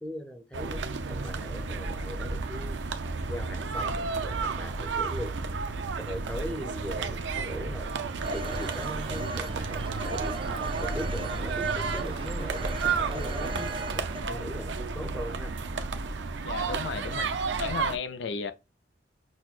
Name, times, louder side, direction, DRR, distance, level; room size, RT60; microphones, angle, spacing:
voice 1, 0.0-2.8 3.3-5.3 6.1-7.9 8.3-10.4 10.8-13.7 13.9-15.6, equal, 5° left, 0.7 m, -40 dB
sound 1, 0.5-18.0, right 4 dB, 85° right, 0.5 m, -32 dB
Telephone, 8.2-14.2, right 1 dB, 30° right, 0.4 m, -38 dB
voice 2, 16.4-17.3 17.6-18.5, left 5 dB, 75° left, 0.5 m, -34 dB
6.0 x 2.1 x 2.4 m
head